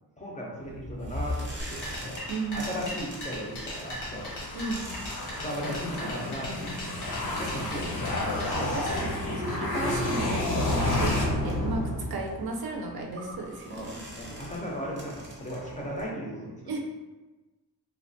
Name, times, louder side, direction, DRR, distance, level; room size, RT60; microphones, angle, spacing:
voice 1, 0.2-2.2 2.5-4.3 5.4-6.7 7.0-7.1 7.4-8.1 8.5-8.8 11.6-11.8 13.7-16.8, equal, 20° left, -3 dB, 0.5 m, -36 dB
sound 1, 0.6-16.1, left 1 dB, 30° right, 0.6 m, -43 dB
sound 2, 1.6-9.0, equal, 90° left, 1.0 m, -39 dB
voice 2, 2.3-2.8 4.5-4.9 8.7-11.1 11.4-11.8 12.1-14.0 16.7-16.8, right 3 dB, 70° right, 0 dB, 0.5 m, -34 dB
sound 3, 3.2-12.5, left 1 dB, 70° left, 0.7 m, -31 dB
3.1 x 2.2 x 2.6 m, 1.2 s
wide cardioid pair, 155°, 39 cm